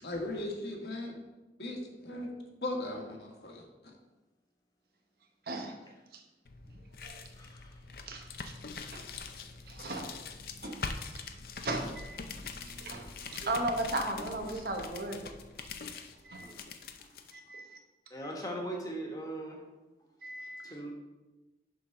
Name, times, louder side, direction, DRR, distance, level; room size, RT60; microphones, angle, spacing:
voice 1, 0.0-1.2 1.6-2.3 2.6-3.6, left 1 dB, 75° left, 0 dB, 1.5 m, -37 dB
voice 2, 5.5-5.8 6.1-6.2 7.0-7.3 8.1-8.5 8.9-9.1 9.7-10.1 10.6-10.8 11.6-15.3 16.2-16.5 17.3-17.8 20.2-20.8, right 2 dB, 60° right, 3 dB, 1.0 m, -37 dB
sound 1, 6.4-17.3, left 4 dB, 55° left, 0.5 m, -44 dB
voice 3, 7.3-7.8 18.1-19.6 20.6-20.9, right 1 dB, 20° left, -1 dB, 1.3 m, -39 dB
7.0 x 3.9 x 5.8 m, 1.1 s
head